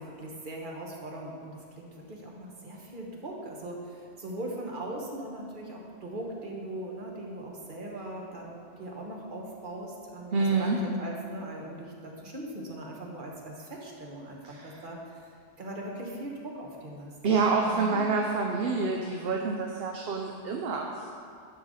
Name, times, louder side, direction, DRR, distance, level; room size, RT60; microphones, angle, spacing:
voice 1, 0.0-15.0 15.6-17.4 17.7-18.1, right 1 dB, 50° right, -1 dB, 1.4 m, -40 dB
voice 2, 10.3-10.8 14.4-14.8 17.2-21.1, right 4 dB, 65° right, 1 dB, 0.9 m, -27 dB
11.0 x 4.0 x 6.4 m, 2.2 s
omnidirectional pair, 1.1 m